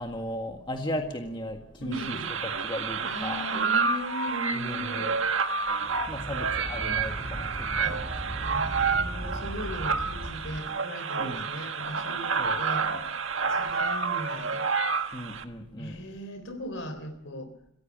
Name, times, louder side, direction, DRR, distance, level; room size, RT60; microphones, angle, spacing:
voice 1, 0.0-2.2 2.6-3.5 4.5-5.2 5.8-8.5 8.7-8.8 11.2-11.5 12.4-13.1 13.4-13.6 15.1-16.1, left 1 dB, 25° left, 3 dB, 1.8 m, -37 dB
voice 2, 1.8-2.3 3.0-5.1 7.8-8.0 8.4-12.9 13.5-14.7 15.8-17.5, equal, 70° left, 10 dB, 3.9 m, -38 dB
sound 1, 1.9-15.4, right 5 dB, 70° right, 1.6 m, -29 dB
sound 2, 5.8-10.7, equal, 30° right, 3.8 m, -38 dB
26.0 x 16.0 x 7.5 m, 0.78 s
head